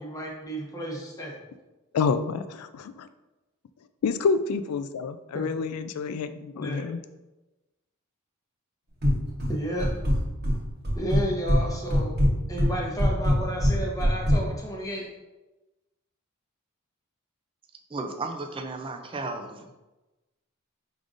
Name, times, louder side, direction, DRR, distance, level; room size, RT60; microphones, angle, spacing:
voice 1, 0.0-1.4 5.3-5.5 6.5-6.9 9.5-9.9 10.9-12.1 12.5-15.1, right 1 dB, 15° left, -2 dB, 0.8 m, -32 dB
voice 2, 1.9-3.1 4.0-7.0, left 5 dB, 80° left, 10 dB, 0.3 m, -28 dB
sound 1, 9.0-9.5 9.8-10.6 10.8-11.6 11.9-14.4, equal, 45° right, 1.0 m, -22 dB
voice 3, 17.9-19.7, right 3 dB, 25° right, 5 dB, 0.3 m, -34 dB
5.1 x 3.7 x 2.5 m, 1.1 s
head